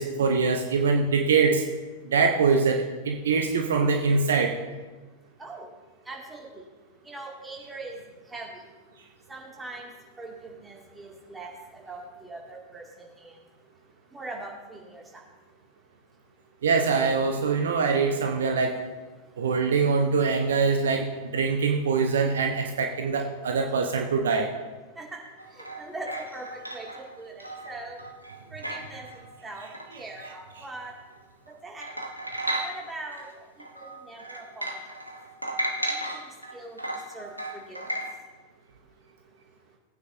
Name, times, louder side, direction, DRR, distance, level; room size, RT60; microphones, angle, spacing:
voice 1, 0.0-1.6 2.0-4.5 16.6-18.8 19.4-24.5, right 5 dB, 65° right, 4 dB, 0.9 m, -23 dB
voice 2, 6.1-6.6 7.0-8.0 8.3-8.6 9.3-9.9 10.2-13.4 14.1-15.2 24.9-25.2 25.5-28.0 28.5-29.1 29.4-29.7 29.9-30.9 31.6-31.9 32.6-33.4 33.7-35.0 35.9-36.8 37.1-38.0, right 2 dB, 10° right, -2 dB, 2.6 m, -41 dB
sound 1, 25.4-31.1 31.5-31.6 31.8-33.3 33.6-38.1, right 1 dB, 90° right, 1.0 m, -35 dB
18.0 x 9.2 x 2.8 m, 1.3 s
figure-of-eight pair, 90°, 0 cm